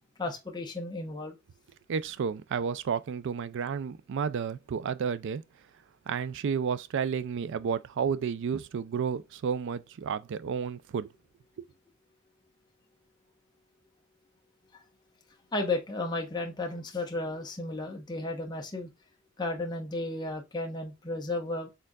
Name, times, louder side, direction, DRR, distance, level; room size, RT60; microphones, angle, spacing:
voice 1, 0.2-1.4 15.5-18.9 19.4-21.7, left 2 dB, 20° left, 0.8 m, -33 dB
voice 2, 1.9-5.4 6.1-11.1 11.6-11.7, right 6 dB, 60° right, 0.4 m, -31 dB
4.4 x 3.7 x 2.3 m
head